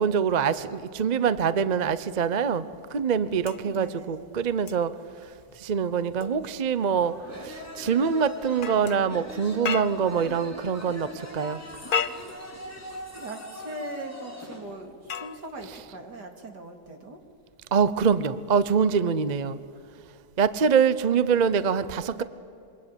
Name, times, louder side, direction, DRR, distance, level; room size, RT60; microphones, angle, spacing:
voice 1, 0.0-2.6 2.9-4.9 5.6-7.1 7.4-11.6 17.7-19.6 20.4-22.2, right 6 dB, 40° right, 14 dB, 0.6 m, -24 dB
sound 1, 3.4-10.3 11.6-13.2 14.6-16.2 17.7-17.9, left 7 dB, 45° left, 0.7 m, -37 dB
voice 2, 3.6-4.4 13.1-17.2 22.1-22.2, right 1 dB, 75° right, 4 dB, 3.3 m, -40 dB
sound 2, 6.8-14.7, left 1 dB, 10° left, 3.9 m, -41 dB
26.5 x 24.0 x 9.0 m, 2.5 s
omnidirectional pair, 1.8 m